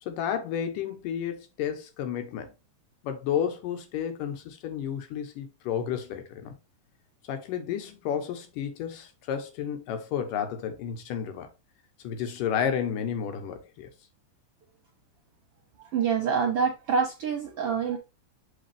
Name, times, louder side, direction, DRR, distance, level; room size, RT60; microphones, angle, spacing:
voice 1, 0.0-2.5 3.0-6.5 7.3-11.5 12.0-13.9, left 8 dB, 80° left, 2.8 m, -31 dB
voice 2, 15.9-18.0, right 6 dB, 65° right, 1.4 m, -26 dB
6.6 x 5.3 x 3.4 m
omnidirectional pair, 3.8 m